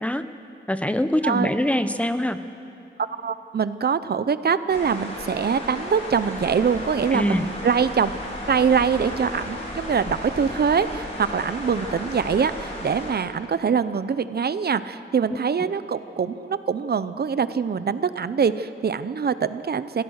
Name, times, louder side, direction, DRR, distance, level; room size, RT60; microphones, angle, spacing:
voice 1, 0.7-2.4 7.1-7.5, left 1 dB, 5° left, 10 dB, 0.8 m, -23 dB
voice 2, 3.1-8.1 8.5-20.0, right 6 dB, 55° right, 13 dB, 0.7 m, -24 dB
sound 1, 4.7-13.1, left 1 dB, 35° left, 4.5 m, -34 dB
28.0 x 16.0 x 6.5 m, 2.6 s
wide cardioid pair, 145°, 19 cm